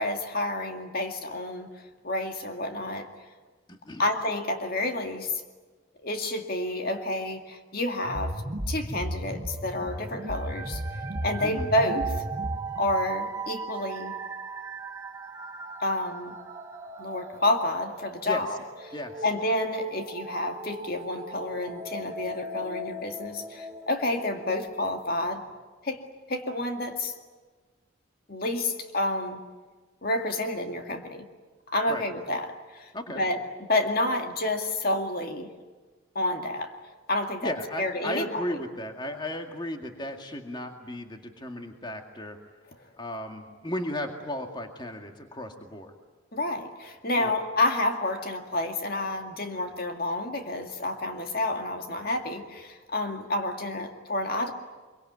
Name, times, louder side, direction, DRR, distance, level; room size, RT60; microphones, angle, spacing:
voice 1, 0.0-1.7 2.0-3.1 4.0-5.4 6.0-8.4 8.7-10.8 11.2-12.1 12.8-14.1 15.8-16.4 17.0-18.6 19.2-25.4 25.8-26.0 26.3-27.1 28.3-29.4 30.0-31.3 31.7-33.4 33.7-35.5 36.2-36.7 37.1-37.5 37.8-38.6 46.3-54.5, left 1 dB, 50° left, 4 dB, 2.2 m, -29 dB
voice 2, 3.7-4.0 11.4-11.7 18.2-18.4 18.9-19.2 31.9-32.0 32.9-33.2 37.4-42.4 43.0-45.9 47.2-47.3, left 1 dB, 20° left, 4 dB, 2.0 m, -35 dB
sound 1, 8.0-13.1, equal, 55° right, 2.3 m, -34 dB
sound 2, 9.5-24.7, right 3 dB, 15° right, 1.5 m, -39 dB
25.0 x 24.0 x 9.5 m, 1.4 s
head